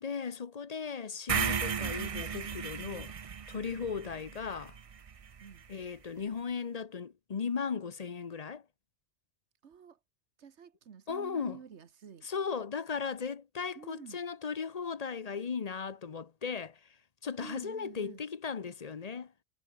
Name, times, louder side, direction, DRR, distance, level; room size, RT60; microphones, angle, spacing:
voice 1, 0.0-3.1 3.5-4.7 5.7-8.6 11.1-11.6 12.2-16.8 17.2-19.3, left 6 dB, 40° left, 0.8 m, -37 dB
sound 1, 1.3-5.4, right 6 dB, 40° right, 0.6 m, -35 dB
voice 2, 9.6-10.0 10.4-12.3 13.7-14.2 17.4-18.2, right 7 dB, 85° right, 1.5 m, -50 dB
omnidirectional pair, 1.1 m